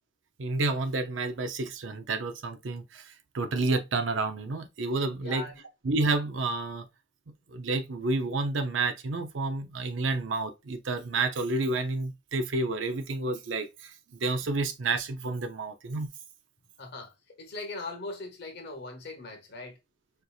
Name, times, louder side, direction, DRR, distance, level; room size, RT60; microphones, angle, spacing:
voice 1, 0.4-5.4 5.8-6.9 7.5-13.9 14.2-16.1, right 3 dB, 70° right, 0.6 m, -30 dB
voice 2, 5.2-5.6 16.8-19.8, left 3 dB, 55° left, 1.0 m, -40 dB
4.5 x 2.6 x 2.4 m
head